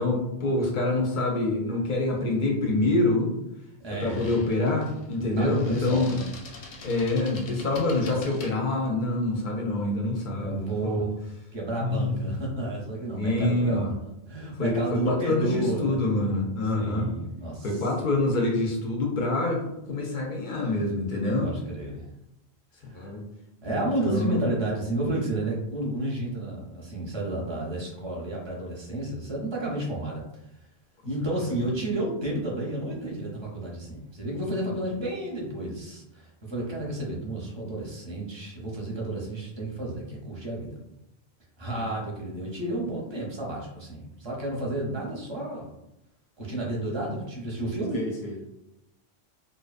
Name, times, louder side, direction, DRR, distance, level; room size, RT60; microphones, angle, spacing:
voice 1, 0.0-3.3 4.0-6.2 6.8-11.0 11.8-12.3 13.1-13.9 14.6-17.1 17.6-21.5 22.8-23.2 23.7-24.4 31.4-31.5 41.7-41.9 46.5-46.6 47.9-48.3, left 2 dB, 60° left, 0 dB, 0.6 m, -26 dB
sound 1, 2.2-2.4 3.9-8.5, left 3 dB, 90° left, 0.9 m, -45 dB
voice 2, 3.8-4.4 5.4-6.3 10.4-11.1 11.5-16.0 16.7-17.8 21.4-22.1 22.8-23.1 23.6-30.2 31.1-40.8 41.6-45.7 46.4-48.0, right 1 dB, 30° right, -3 dB, 0.6 m, -31 dB
2.6 x 2.1 x 2.3 m, 0.86 s
omnidirectional pair, 1.1 m